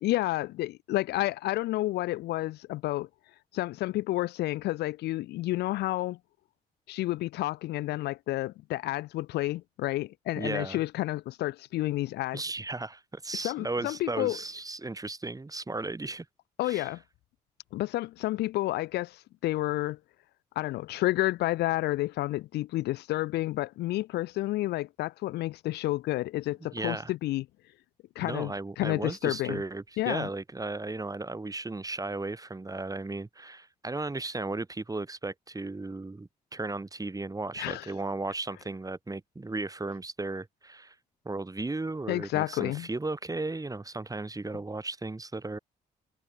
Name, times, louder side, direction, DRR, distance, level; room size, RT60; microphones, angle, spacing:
voice 1, 0.0-3.1 3.5-6.2 6.9-12.4 13.4-14.4 16.6-17.0 17.7-20.0 20.6-27.5 28.2-29.6 30.0-30.3 37.6-37.9 42.1-42.9, left 17 dB, 85° left, 0.8 m, -30 dB
voice 2, 10.4-10.8 12.3-16.3 16.6-16.9 26.7-27.1 28.2-40.9 41.3-45.6, right 2 dB, 20° right, 5.5 m, -35 dB
supercardioid pair, 65°, 17 cm